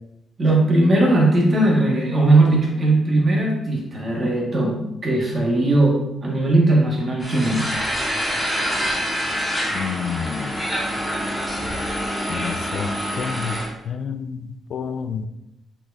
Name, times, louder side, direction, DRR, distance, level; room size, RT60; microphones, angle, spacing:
voice 1, 0.4-7.7, right 2 dB, 30° right, -2 dB, 1.6 m, -18 dB
sound 1, 7.2-13.7, equal, 5° right, 1.4 m, -26 dB
voice 2, 9.7-10.5 12.3-12.9 13.2-13.6 13.9-14.4 14.7-15.3, left 7 dB, 55° left, 9 dB, 0.4 m, -28 dB
6.3 x 6.1 x 2.6 m, 0.89 s
cardioid pair, 155°, 0 cm